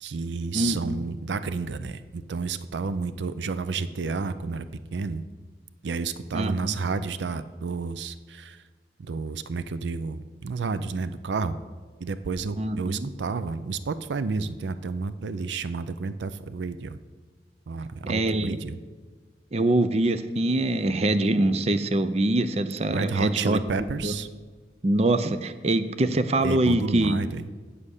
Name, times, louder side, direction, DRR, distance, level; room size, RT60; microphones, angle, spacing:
voice 1, 0.0-4.7 4.9-5.2 5.8-8.6 9.0-11.6 12.0-17.0 17.7-18.8 22.9-24.3 26.4-27.4, right 4 dB, 90° right, 13 dB, 0.5 m, -31 dB
voice 2, 0.5-1.0 6.3-6.8 12.5-13.1 18.1-18.6 19.5-23.6 24.0-24.2 24.8-27.2, right 1 dB, 35° right, 11 dB, 0.5 m, -24 dB
8.3 x 7.5 x 6.5 m, 1.5 s
head